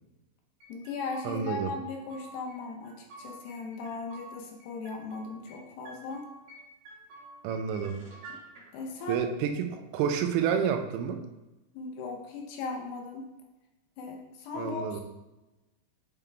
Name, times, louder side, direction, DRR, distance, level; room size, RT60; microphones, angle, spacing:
sound 1, 0.6-1.6 1.9-2.6 2.8-4.3 4.6-5.6 5.9-6.6 6.9-8.4, right 2 dB, 65° right, 2.3 m, -49 dB
voice 1, 0.7-6.3 8.3-8.4 8.7-9.2 11.7-13.3 14.0-15.0, left 4 dB, 75° left, 1 dB, 2.7 m, -38 dB
voice 2, 1.2-1.7 7.4-8.0 9.1-11.2 14.6-15.0, right 7 dB, 90° right, 6 dB, 2.9 m, -29 dB
sound 2, 7.7-9.8, equal, 40° right, 1.7 m, -56 dB
8.7 x 3.7 x 3.4 m, 1.0 s
omnidirectional pair, 5.1 m